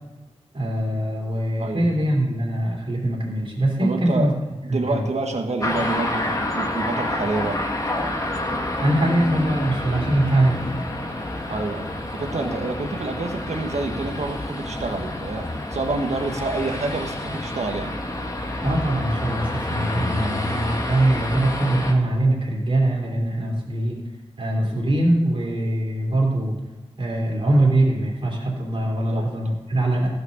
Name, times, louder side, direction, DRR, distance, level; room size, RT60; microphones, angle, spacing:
voice 1, 0.5-4.3 4.7-5.1 8.8-10.6 18.6-24.0 24.4-26.6 27.0-30.1, right 1 dB, 50° right, -6 dB, 3.1 m, -22 dB
voice 2, 1.6-2.0 3.8-4.3 4.6-7.6 11.5-17.9 20.2-20.4 29.0-29.3, right 3 dB, 75° right, 3 dB, 1.6 m, -28 dB
sound 1, 5.6-21.9, left 1 dB, 30° left, 1.6 m, -28 dB
14.5 x 6.2 x 6.7 m, 1.2 s
wide cardioid pair, 105°, 12 cm